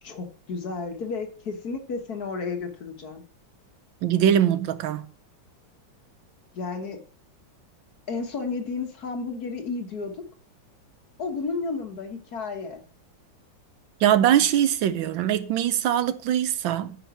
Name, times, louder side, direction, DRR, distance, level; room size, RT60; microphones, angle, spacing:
voice 1, 0.0-3.2 6.5-7.0 8.1-10.1 11.2-12.8, left 4 dB, 55° left, 1.9 m, -32 dB
voice 2, 4.0-5.1 14.0-17.0, right 10 dB, 90° right, 1.5 m, -22 dB
9.6 x 6.0 x 6.0 m
omnidirectional pair, 2.0 m